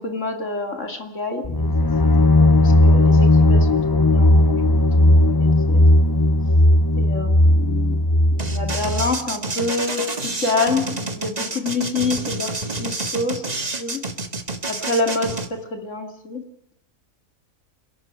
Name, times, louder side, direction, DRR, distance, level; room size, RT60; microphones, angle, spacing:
voice 1, 0.0-1.7 2.4-6.1 7.0-8.0 8.4-10.1 10.4-12.5 12.8-13.4 13.8-14.0 14.7-16.4, left 3 dB, 55° left, 4 dB, 2.9 m, -27 dB
sound 1, 1.4-9.2, left 1 dB, 25° left, 0.6 m, -16 dB
sound 2, 8.4-15.5, right 3 dB, 30° right, 1.7 m, -28 dB
27.5 x 12.0 x 9.0 m, 0.81 s
omnidirectional pair, 1.5 m